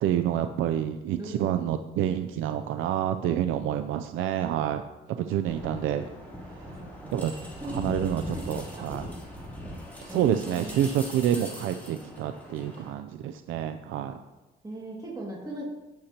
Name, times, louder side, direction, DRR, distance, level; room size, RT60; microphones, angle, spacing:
voice 1, 0.0-4.8 5.1-6.0 6.5-6.7 7.1-7.4 7.7-9.1 10.0-14.2, right 10 dB, 85° right, 9 dB, 0.5 m, -28 dB
voice 2, 1.2-1.6 6.6-7.2 7.6-7.8 8.3-8.4 8.9-9.0 10.1-10.3 10.6-10.8 14.6-15.6, right 1 dB, 20° right, -4 dB, 2.2 m, -39 dB
sound 1, 5.5-12.9, equal, 10° left, 3.2 m, -40 dB
16.0 x 6.6 x 2.9 m, 1.1 s
cardioid pair, 90°, 20 cm